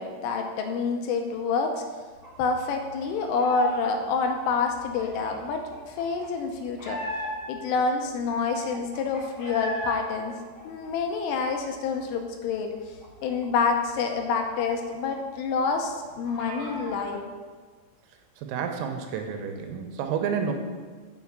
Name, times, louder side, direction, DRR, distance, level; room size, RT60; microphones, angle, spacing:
voice 1, 0.0-1.8 2.4-7.0 7.5-10.3 10.6-12.9 13.2-17.3, left 4 dB, 80° left, 4 dB, 3.2 m, -27 dB
sound 1, 2.2-3.8 4.1-7.6 8.0-8.1 8.3-9.9 10.3-12.0 12.3-12.4 12.7-15.2 15.5-15.6 15.9-17.1, equal, 10° left, 1.8 m, -38 dB
voice 2, 18.4-20.5, right 7 dB, 85° right, 4 dB, 3.6 m, -30 dB
7.1 x 6.8 x 7.3 m, 1.5 s
omnidirectional pair, 5.9 m